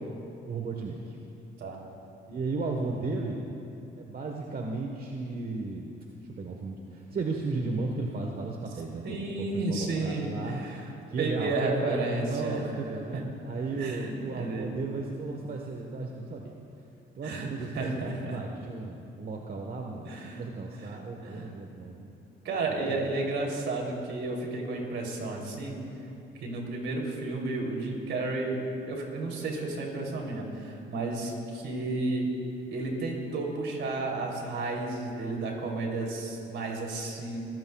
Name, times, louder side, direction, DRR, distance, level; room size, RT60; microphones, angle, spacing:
voice 1, 0.4-1.2 2.3-3.5 4.0-6.0 6.4-10.6 11.1-16.5 17.1-20.1 20.3-22.1 22.8-23.1, right 3 dB, 50° right, 1 dB, 1.3 m, -35 dB
voice 2, 9.0-10.9 11.2-12.6 13.1-13.2 13.8-14.7 17.2-18.4 20.0-20.4 20.7-21.0 21.2-21.5 22.4-25.8 26.4-28.6 28.9-32.3 32.7-37.4, right 2 dB, 70° right, -1 dB, 3.2 m, -32 dB
24.5 x 15.5 x 2.3 m, 2.7 s
cardioid pair, 90°, 20 cm